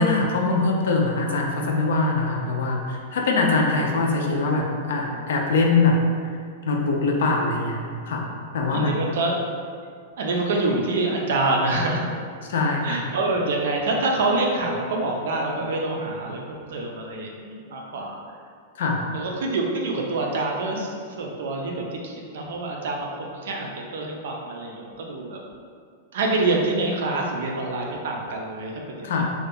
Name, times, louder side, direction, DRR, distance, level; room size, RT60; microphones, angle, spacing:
voice 1, 0.0-6.0 6.7-8.3 8.5-8.9 12.5-13.1 18.8-19.0 29.0-29.2, left 3 dB, 70° left, 0 dB, 0.4 m, -22 dB
voice 2, 8.7-9.4 10.2-12.1 12.8-18.3 19.1-25.4 26.1-29.2, right 2 dB, 65° right, 0 dB, 0.4 m, -26 dB
2.4 x 2.2 x 2.6 m, 2.1 s
supercardioid pair, 175°, 0 cm